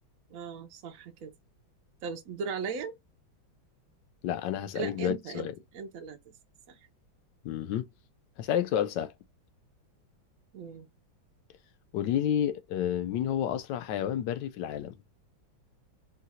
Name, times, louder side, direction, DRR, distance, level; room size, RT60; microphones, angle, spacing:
voice 1, 0.3-1.3 2.0-3.0 4.7-5.5 5.7-6.3 6.7-6.9 10.5-10.9, right 5 dB, 70° right, 0.8 m, -38 dB
voice 2, 4.2-5.5 7.4-7.8 8.4-9.1 11.9-14.9, left 10 dB, 75° left, 1.2 m, -30 dB
3.9 x 2.3 x 4.1 m
omnidirectional pair, 2.1 m